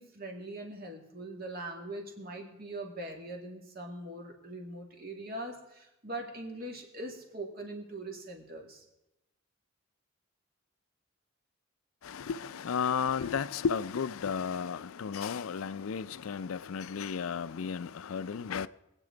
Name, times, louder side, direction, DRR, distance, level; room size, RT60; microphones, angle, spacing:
voice 1, 0.0-8.9, right 1 dB, 45° right, 2.2 m, -42 dB
voice 2, 12.0-18.7, left 6 dB, 85° left, 0.4 m, -33 dB
23.5 x 9.0 x 3.9 m
head